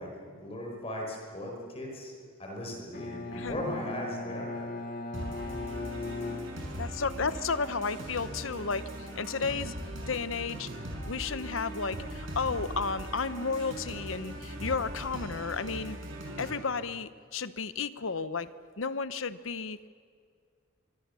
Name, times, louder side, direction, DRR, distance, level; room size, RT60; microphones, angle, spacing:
voice 1, 0.0-4.7 5.5-6.4, left 1 dB, 30° left, 0 dB, 5.4 m, -39 dB
Bowed string instrument, 2.9-7.1, left 2 dB, 45° left, 1.8 m, -38 dB
sound 1, 5.1-16.6, right 1 dB, 65° right, 6.2 m, -40 dB
voice 2, 6.8-9.7 10.1-10.7 11.1-16.0 16.4-18.5 18.8-19.8, left 4 dB, 70° left, 14 dB, 0.9 m, -33 dB
25.0 x 24.0 x 7.0 m, 2.1 s
head